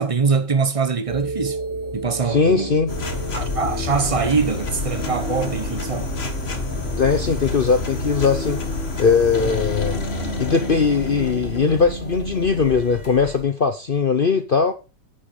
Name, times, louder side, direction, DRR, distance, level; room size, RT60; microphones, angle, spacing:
voice 1, 0.0-1.6 1.9-3.0 3.3-6.1, right 5 dB, 30° right, 0.6 m, -23 dB
sound 1, 1.1-12.8, right 1 dB, 70° right, 4.5 m, -35 dB
voice 2, 2.3-2.9 7.0-8.6 9.0-9.9 10.4-14.7, left 5 dB, 50° left, 0.6 m, -19 dB
sound 2, 2.9-13.4, left 3 dB, 35° left, 1.7 m, -28 dB
9.4 x 7.2 x 5.3 m
omnidirectional pair, 1.9 m